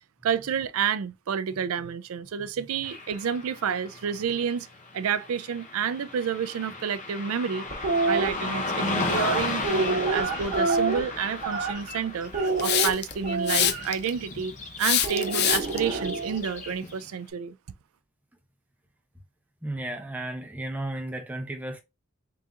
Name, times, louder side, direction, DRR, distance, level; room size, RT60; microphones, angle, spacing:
voice 1, 0.2-4.7 4.9-7.6 8.1-12.3 12.6-14.5 14.8-17.5, right 7 dB, 80° right, 0.4 m, -29 dB
Car passing by / Traffic noise roadway noise, 2.8-17.1, left 3 dB, 35° left, 0.9 m, -35 dB
sound 1, 7.7-8.3 9.1-12.0 12.3-13.8 15.0-16.4, right 3 dB, 40° right, 1.2 m, -27 dB
Hiss, 12.6-13.1 13.5-14.1 14.8-15.8, left 10 dB, 50° left, 0.5 m, -24 dB
voice 2, 19.6-21.8, right 1 dB, 10° right, 0.8 m, -34 dB
3.7 x 2.8 x 3.7 m
head